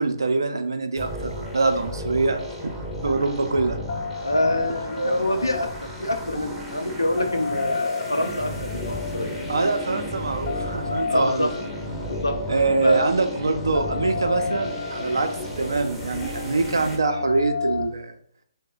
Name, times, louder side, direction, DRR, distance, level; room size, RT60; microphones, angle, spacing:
voice 1, 0.0-2.7 3.0-3.8 5.0-5.2 9.5-11.5 12.5-15.3 15.6-18.1, right 3 dB, 70° right, 7 dB, 0.4 m, -24 dB
sound 1, 1.0-17.0, equal, ahead, 0.6 m, -34 dB
sound 2, 2.5-17.9, left 4 dB, 45° left, 0.5 m, -33 dB
voice 2, 4.2-5.7 6.0-9.3 11.1-11.5 12.0-12.4 12.8-13.1 13.4-13.6, left 1 dB, 90° left, 4 dB, 0.6 m, -26 dB
2.9 x 2.1 x 3.8 m, 0.63 s
figure-of-eight pair, 135°, 2 cm